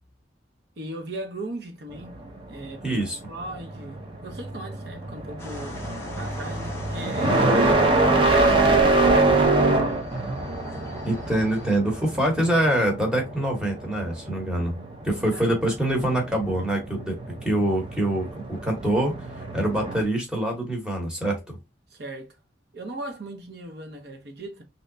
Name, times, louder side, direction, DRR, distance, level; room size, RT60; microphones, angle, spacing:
voice 1, 0.8-2.2 2.5-3.0 3.3-5.8 6.2-7.6 8.3-9.3 15.3-15.4 21.9-22.4 22.7-24.6, right 1 dB, 60° right, 0.8 m, -38 dB
sound 1, 2.0-20.0, right 2 dB, 25° right, 0.6 m, -25 dB
voice 2, 2.8-3.2 7.4-7.6 11.0-14.7 15.0-21.6, right 1 dB, 5° right, 1.0 m, -25 dB
sound 2, 5.4-11.8, left 2 dB, 15° left, 0.6 m, -40 dB
3.3 x 2.8 x 2.6 m
head